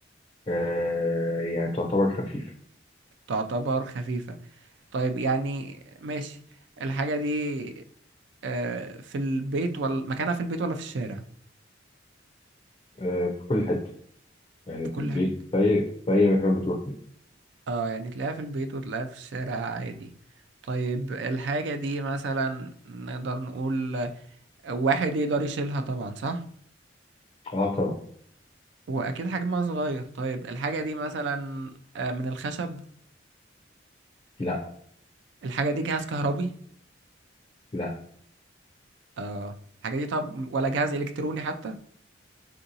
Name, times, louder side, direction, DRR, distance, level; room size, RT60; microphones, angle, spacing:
voice 1, 0.5-2.5 13.0-13.8 14.7-16.9 27.5-27.9 34.4-34.6 37.7-37.9, left 2 dB, 30° left, 1 dB, 0.4 m, -26 dB
voice 2, 3.3-4.4 4.9-6.4 6.8-7.8 8.4-11.2 14.9-15.2 17.7-20.1 20.7-24.1 24.6-26.4 28.9-32.8 35.4-36.5 39.2-39.5 39.8-41.7, right 3 dB, 65° right, 8 dB, 0.3 m, -29 dB
3.6 x 2.5 x 2.7 m, 0.63 s
head